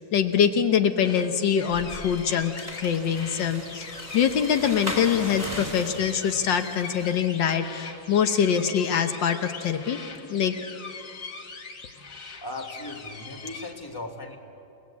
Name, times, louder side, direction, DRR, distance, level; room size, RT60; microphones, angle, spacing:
voice 1, 0.0-10.0 10.3-10.5, left 8 dB, 75° left, 7 dB, 1.7 m, -24 dB
sound 1, 1.0-13.7, left 4 dB, 60° left, 2.2 m, -42 dB
sound 2, 1.7-7.3, equal, 20° right, 4.7 m, -38 dB
voice 2, 12.4-14.4, left 2 dB, 10° left, 1 dB, 2.0 m, -37 dB
29.0 x 19.0 x 8.5 m, 3.0 s
omnidirectional pair, 2.0 m